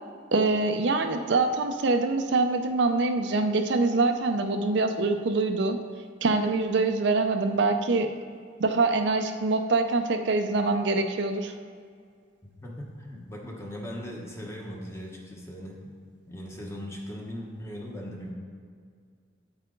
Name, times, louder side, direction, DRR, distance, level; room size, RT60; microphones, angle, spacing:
voice 1, 0.3-5.8 6.2-8.1 8.6-11.5, right 3 dB, 65° right, 6 dB, 0.5 m, -24 dB
voice 2, 12.6-15.9 16.3-18.3, equal, 15° left, -2 dB, 1.1 m, -39 dB
8.9 x 7.4 x 3.8 m, 2.1 s
head